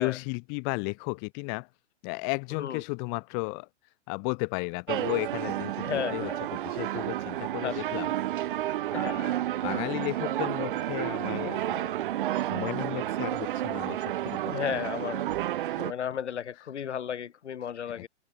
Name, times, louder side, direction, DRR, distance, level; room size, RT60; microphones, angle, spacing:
voice 1, 0.0-1.7 2.0-3.7 4.1-8.1 8.5-12.0 12.5-14.8 15.6-15.9 17.9-18.1, left 40 dB or more, 30° left, 4.8 m, -34 dB
sound 1, 4.9-15.9, right 13 dB, 45° right, 5.2 m, -31 dB
voice 2, 5.8-6.4 7.6-7.8 8.9-9.2 14.5-15.3 15.8-18.1, left 8 dB, 70° left, 6.2 m, -33 dB
hypercardioid pair, 160°, 36 cm